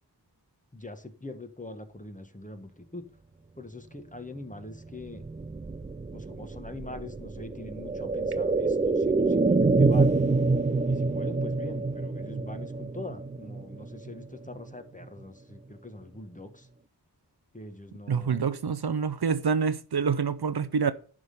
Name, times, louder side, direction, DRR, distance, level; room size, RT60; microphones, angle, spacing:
voice 1, 0.7-3.1 3.6-5.2 6.1-10.2 10.9-16.7 17.5-18.4, left 2 dB, 20° left, 1.1 m, -43 dB
sound 1, 4.9-14.7 15.0-15.1, right 3 dB, 20° right, 0.3 m, -27 dB
voice 2, 18.1-20.9, right 6 dB, 65° right, 0.6 m, -27 dB
10.5 x 3.7 x 6.5 m
wide cardioid pair, 45°, 42 cm